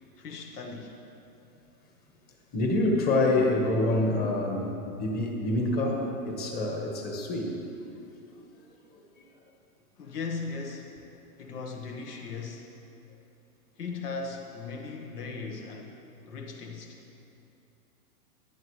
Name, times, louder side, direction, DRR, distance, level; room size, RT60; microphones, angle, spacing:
voice 1, 0.2-1.0 10.0-10.9 11.4-12.7 13.8-16.0 16.3-17.0, left 4 dB, 75° left, 2 dB, 1.5 m, -38 dB
voice 2, 2.5-7.5 8.3-8.4 8.9-9.0, left 2 dB, 20° left, 1 dB, 1.3 m, -27 dB
22.0 x 7.7 x 3.2 m, 2.7 s
hypercardioid pair, 145°, 46 cm